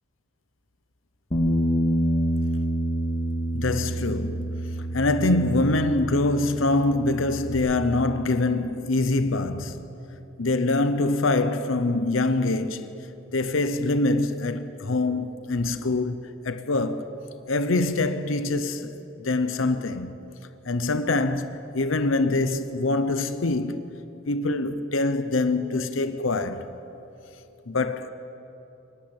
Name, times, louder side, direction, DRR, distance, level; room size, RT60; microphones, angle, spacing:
Bass guitar, 1.3-6.1 6.4-7.6, equal, 30° left, 2.1 m, -27 dB
voice 1, 3.5-9.8 10.4-13.1 13.3-17.1 17.5-18.9 19.2-20.2 20.6-23.9 24.3-26.7 27.7-28.1, left 2 dB, 80° left, 0.9 m, -24 dB
26.5 x 12.0 x 8.9 m
head